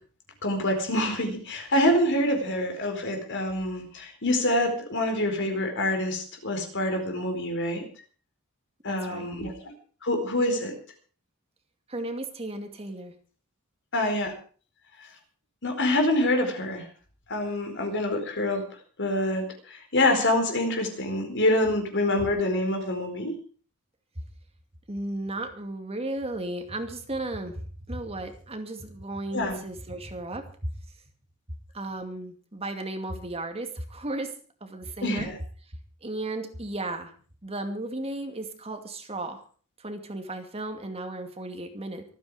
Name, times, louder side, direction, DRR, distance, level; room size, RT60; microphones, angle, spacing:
voice 1, 0.4-7.8 8.8-9.5 10.0-10.7 13.9-14.3 15.6-16.9 17.3-18.6 19.0-23.4 29.3-29.6 35.0-35.3, left 1 dB, 55° left, 4 dB, 4.6 m, -26 dB
voice 2, 8.9-9.3 11.9-13.1 24.9-30.4 31.7-34.3 34.6-35.3 36.0-37.1 37.4-39.4 39.8-42.0, right 2 dB, 25° right, 5 dB, 2.4 m, -35 dB
25.5 x 9.5 x 5.0 m, 0.42 s
head